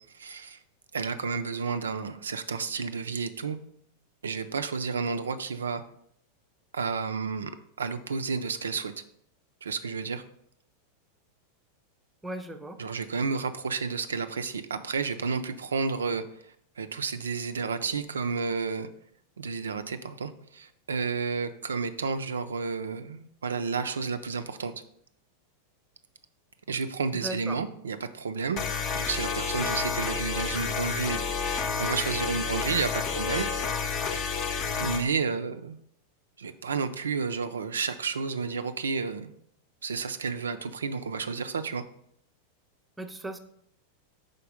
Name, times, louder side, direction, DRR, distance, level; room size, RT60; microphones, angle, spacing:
voice 1, 0.1-0.6 0.9-3.6 4.2-5.8 6.7-7.5 7.8-8.9 9.6-10.2 12.8-16.2 16.8-18.9 19.4-24.7 26.7-28.6 28.9-31.4 31.8-33.5 33.9-34.5 34.8-35.8 36.4-39.3 39.8-41.8, right 5 dB, 70° right, 9 dB, 0.3 m, -31 dB
voice 2, 12.2-12.8 27.1-27.6 43.0-43.4, right 1 dB, 10° right, 6 dB, 0.5 m, -37 dB
sound 1, 28.6-35.1, left 6 dB, 35° left, 0.7 m, -30 dB
5.1 x 4.0 x 5.2 m, 0.69 s
figure-of-eight pair, 90°, 0 cm